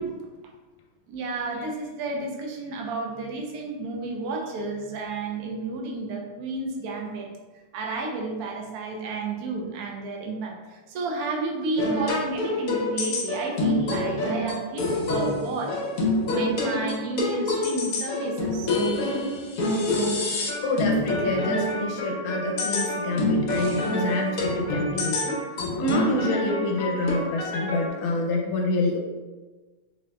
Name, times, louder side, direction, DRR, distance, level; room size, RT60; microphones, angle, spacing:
voice 1, 1.1-7.3 7.7-15.8 16.3-18.7, right 3 dB, 75° right, 0 dB, 0.8 m, -31 dB
sound 1, 11.8-27.9, left 1 dB, 65° left, 0.9 m, -27 dB
voice 2, 20.6-25.4 25.8-29.0, left 2 dB, 85° left, 0 dB, 1.5 m, -27 dB
4.2 x 2.8 x 2.2 m, 1.2 s
omnidirectional pair, 2.2 m